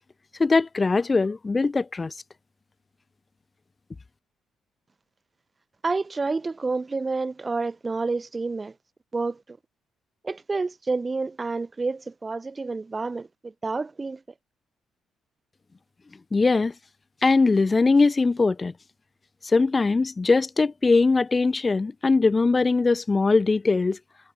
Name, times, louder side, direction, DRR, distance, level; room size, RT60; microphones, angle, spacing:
voice 1, 0.4-2.1 16.3-16.7 17.2-18.7 19.4-24.0, left 3 dB, 25° left, 5.3 m, -21 dB
voice 2, 5.8-8.7 9.1-9.6 10.2-14.2, right 3 dB, 25° right, 2.3 m, -29 dB
cardioid pair, 90°, 0 cm